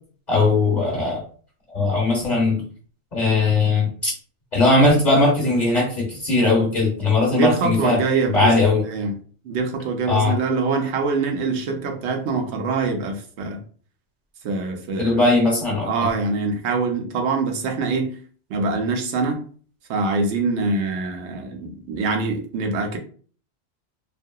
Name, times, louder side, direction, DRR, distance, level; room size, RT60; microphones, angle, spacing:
voice 1, 0.3-1.2 1.7-2.6 3.1-4.1 4.5-8.0 8.3-8.8 10.1-10.4 15.0-16.1, left 2 dB, 45° left, -3 dB, 0.8 m, -19 dB
voice 2, 7.3-8.5 8.8-9.1 9.4-13.6 14.4-15.2 15.7-18.2 18.5-19.4 19.9-23.0, right 4 dB, 75° right, 4 dB, 0.9 m, -24 dB
2.7 x 2.5 x 2.2 m, 0.43 s
omnidirectional pair, 1.1 m